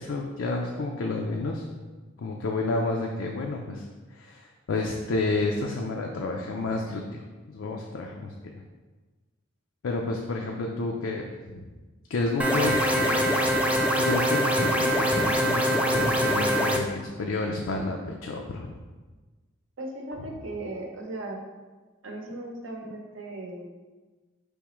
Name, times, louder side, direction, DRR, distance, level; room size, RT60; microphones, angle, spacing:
voice 1, 0.0-1.7 2.2-3.9 4.1-8.5 9.8-11.7 12.1-18.7, left 3 dB, 75° left, 1 dB, 0.4 m, -30 dB
sound 1, 12.4-16.8, equal, 5° right, 0.4 m, -23 dB
voice 2, 19.8-21.4 22.0-23.7, right 2 dB, 70° right, 1 dB, 0.7 m, -37 dB
4.9 x 3.5 x 3.0 m, 1.3 s
head